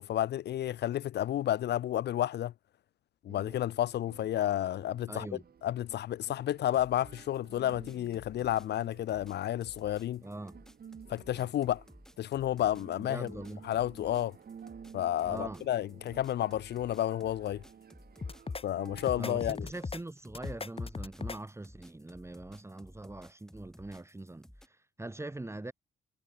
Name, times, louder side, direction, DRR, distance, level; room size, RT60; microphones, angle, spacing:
voice 1, 0.0-2.5 3.2-5.3 5.6-10.2 11.1-11.8 12.2-13.4 13.6-14.3 14.9-17.6 18.6-19.7, left 12 dB, 60° left, 0.5 m, -31 dB
sound 1, 3.3-19.5, right 7 dB, 50° right, 6.3 m, -54 dB
voice 2, 5.1-5.4 10.2-10.5 13.0-13.6 15.3-15.6 19.2-25.7, right 2 dB, 15° right, 2.8 m, -42 dB
sound 2, 6.6-24.7, equal, 5° left, 4.9 m, -56 dB
sound 3, 18.2-18.6 19.0-20.0 20.3-21.4, left 4 dB, 30° left, 3.3 m, -38 dB
cardioid pair, 90°, 20 cm